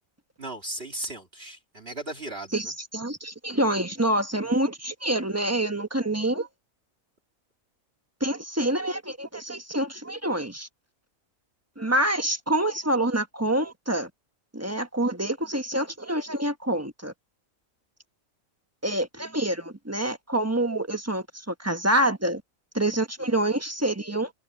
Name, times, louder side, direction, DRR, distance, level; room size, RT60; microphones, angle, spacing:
voice 1, 0.4-2.8, right 1 dB, 45° right, 2.5 m, -36 dB
voice 2, 2.5-6.5 8.2-10.7 11.8-14.1 14.5-17.1 18.8-22.4 22.7-24.3, right 1 dB, 10° right, 1.0 m, -26 dB
omnidirectional pair, 1.4 m